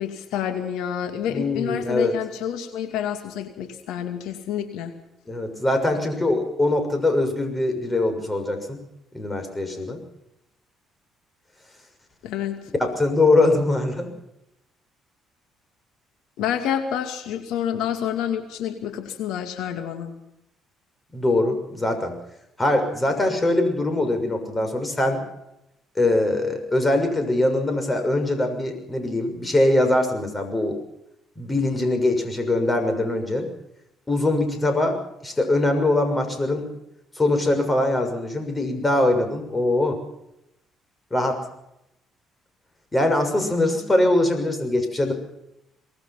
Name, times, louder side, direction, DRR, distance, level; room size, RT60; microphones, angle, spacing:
voice 1, 0.0-4.9 12.2-12.6 16.4-20.1, left 9 dB, 85° left, 7 dB, 2.4 m, -28 dB
voice 2, 1.3-2.1 5.3-8.8 9.1-10.0 12.7-14.1 21.1-22.1 22.6-25.2 26.0-30.8 31.4-33.5 34.1-36.7 37.2-40.0 41.1-41.4 42.9-45.1, left 2 dB, 15° left, 6 dB, 6.5 m, -22 dB
24.0 x 19.5 x 5.9 m, 0.83 s
cardioid pair, 105°, 0 cm